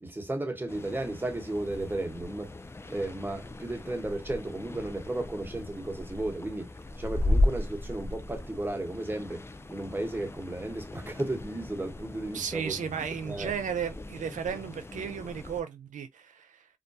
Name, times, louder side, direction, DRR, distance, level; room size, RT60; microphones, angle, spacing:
voice 1, 0.0-2.5 2.9-12.8 13.2-13.5, right 2 dB, 15° right, 1.0 m, -34 dB
sound 1, 0.7-15.6, left 1 dB, 20° left, 0.4 m, -35 dB
voice 2, 12.3-16.7, right 7 dB, 75° right, 0.5 m, -34 dB
2.3 x 2.2 x 2.6 m
cardioid pair, 45°, 13 cm